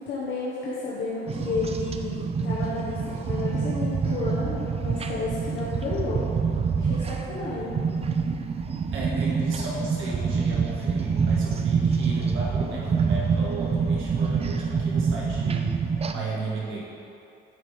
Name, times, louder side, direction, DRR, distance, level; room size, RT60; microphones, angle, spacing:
voice 1, 0.0-6.3 6.8-7.8 15.8-16.0, left 3 dB, 65° left, -7 dB, 1.1 m, -32 dB
sound 1, 1.3-16.1, right 5 dB, 30° right, 0.4 m, -26 dB
voice 2, 8.9-15.7 16.1-16.8, right 3 dB, 90° right, -5 dB, 1.6 m, -33 dB
8.0 x 3.8 x 4.8 m, 2.8 s
cardioid pair, 90°, 20 cm